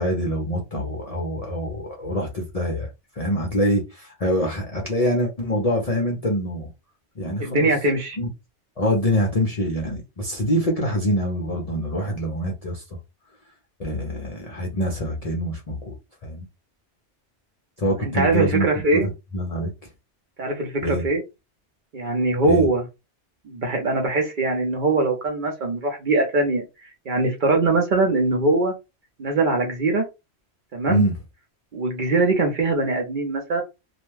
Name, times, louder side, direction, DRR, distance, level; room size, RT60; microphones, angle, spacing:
voice 1, 0.0-2.9 3.2-6.7 7.2-7.7 8.2-8.3 8.8-12.8 13.8-15.9 16.2-16.5 17.8-18.7 18.9-19.7 20.8-21.0 22.4-22.6 30.9-31.1, equal, 45° left, 0.5 m, -25 dB
voice 2, 7.4-8.2 18.0-19.1 20.4-21.2 21.9-22.8 23.5-26.6 27.1-28.7 29.2-30.0 30.7-31.0 31.7-33.6, right 2 dB, 50° right, 0.7 m, -22 dB
2.4 x 2.1 x 3.1 m
omnidirectional pair, 1.2 m